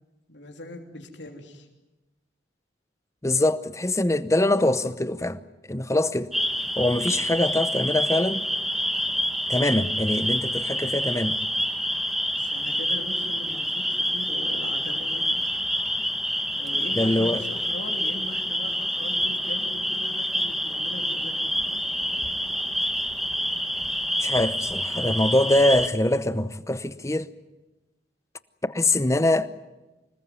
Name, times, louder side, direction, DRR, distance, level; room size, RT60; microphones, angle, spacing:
voice 1, 0.3-1.7 10.2-10.3 10.6-10.9 12.4-15.2 16.5-21.5, left 2 dB, 85° left, 3.1 m, -40 dB
voice 2, 3.2-5.4 5.7-6.3 6.8-8.4 9.5-11.4 17.0-17.4 24.2-27.3 28.6-29.5, left 1 dB, 15° left, 0.9 m, -23 dB
sound 1, 6.3-25.9, equal, ahead, 1.4 m, -27 dB
26.0 x 20.5 x 9.6 m
head